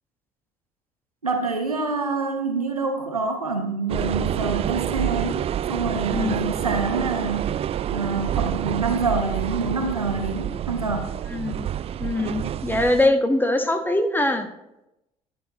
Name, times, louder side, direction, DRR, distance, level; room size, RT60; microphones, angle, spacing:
voice 1, 1.2-5.4 5.7-11.1, right 3 dB, 90° right, 4 dB, 0.9 m, -26 dB
sound 1, 3.9-13.1, right 10 dB, 35° right, 0.3 m, -28 dB
voice 2, 6.1-6.4 11.3-11.7 12.0-14.5, left 1 dB, 10° left, 6 dB, 1.4 m, -22 dB
11.5 x 8.7 x 3.0 m, 0.87 s
figure-of-eight pair, 50°, 18 cm